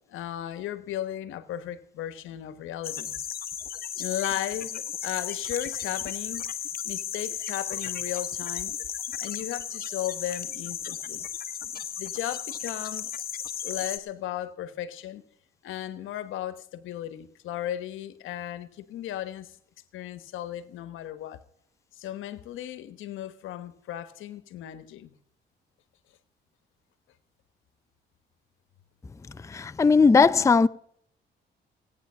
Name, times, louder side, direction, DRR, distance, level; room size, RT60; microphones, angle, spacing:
voice 1, 0.1-3.2 4.0-6.5 6.8-8.7 9.2-11.2 12.0-13.3 13.6-15.2 15.6-19.5 19.9-21.4 22.0-25.1, left 12 dB, 85° left, 1.2 m, -35 dB
sound 1, 2.8-14.0, left 9 dB, 50° left, 1.2 m, -34 dB
voice 2, 29.5-30.7, left 4 dB, 15° left, 0.4 m, -18 dB
17.5 x 9.4 x 5.6 m
cardioid pair, 90°, 20 cm